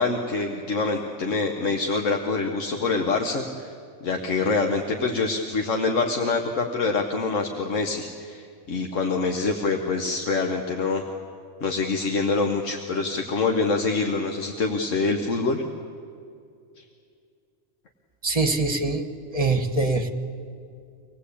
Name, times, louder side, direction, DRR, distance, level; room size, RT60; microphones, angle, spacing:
voice 1, 0.0-3.7 4.0-11.0 11.6-15.6 16.8-16.9, left 3 dB, 90° left, 3 dB, 1.6 m, -25 dB
voice 2, 18.2-19.1 19.3-20.1, right 3 dB, 30° right, 6 dB, 1.4 m, -23 dB
25.5 x 18.0 x 8.5 m, 2.4 s
omnidirectional pair, 1.3 m